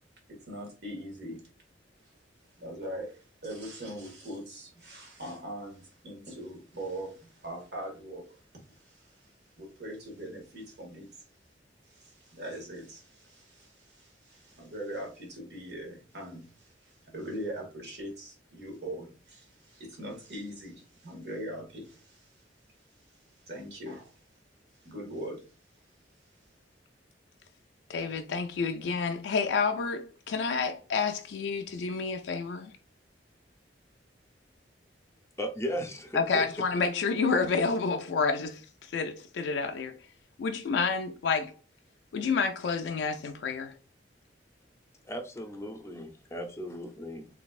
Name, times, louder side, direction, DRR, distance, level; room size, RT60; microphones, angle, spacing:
voice 1, 0.3-1.4 2.6-8.4 8.7-9.3 9.6-11.2 11.9-22.4 23.4-24.2 24.8-25.4, right 1 dB, 65° right, 1.9 m, -41 dB
voice 2, 27.9-32.7 36.1-40.0 40.4-41.5 42.1-43.8, left 5 dB, 85° left, 0.3 m, -29 dB
voice 3, 35.4-36.4 45.1-47.3, equal, 15° left, 0.6 m, -36 dB
3.9 x 3.3 x 2.4 m
head